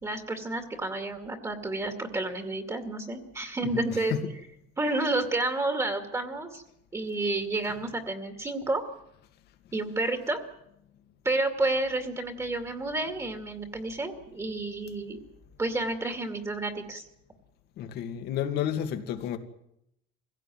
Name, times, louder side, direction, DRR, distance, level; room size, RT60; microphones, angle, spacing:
voice 1, 0.0-4.2 4.8-6.6 6.9-8.8 9.7-10.5 11.2-15.2 15.6-17.0, right 2 dB, 15° right, 2.3 m, -30 dB
voice 2, 3.6-4.4 17.8-19.4, left 9 dB, 60° left, 2.3 m, -31 dB
24.0 x 16.5 x 9.2 m
cardioid pair, 145°, 19 cm